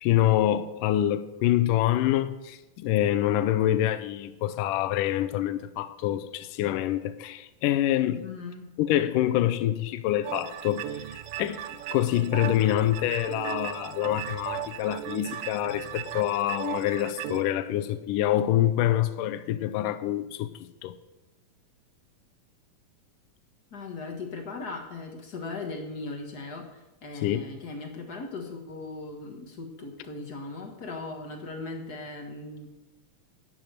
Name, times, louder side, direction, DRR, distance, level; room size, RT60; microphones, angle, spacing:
voice 1, 0.0-8.3 8.8-11.6 11.9-20.5 20.8-21.0 27.2-27.4, left 12 dB, 85° left, 2.2 m, -26 dB
voice 2, 8.2-8.7 23.7-32.8, left 3 dB, 45° left, 1.3 m, -38 dB
sound 1, 10.2-17.4, right 12 dB, 90° right, 2.3 m, -37 dB
11.0 x 8.7 x 6.6 m
omnidirectional pair, 3.8 m